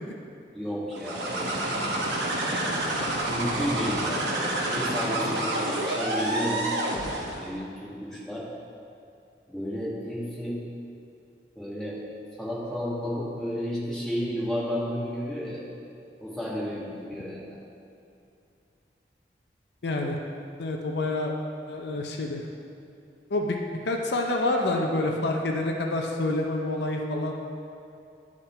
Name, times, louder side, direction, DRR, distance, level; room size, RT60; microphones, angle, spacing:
voice 1, 0.5-2.0 2.4-2.8 3.3-6.7 7.4-8.4 9.5-10.6 11.5-12.0 12.4-15.6 16.2-17.4, equal, 5° left, -9 dB, 1.7 m, -32 dB
sound 1, 0.9-7.5, right 1 dB, 85° right, 1.0 m, -28 dB
voice 2, 19.8-20.2 20.6-21.3 21.7-22.4 23.3-23.6 23.8-27.3, left 2 dB, 75° left, 1 dB, 0.6 m, -27 dB
10.5 x 3.7 x 4.3 m, 2.6 s
head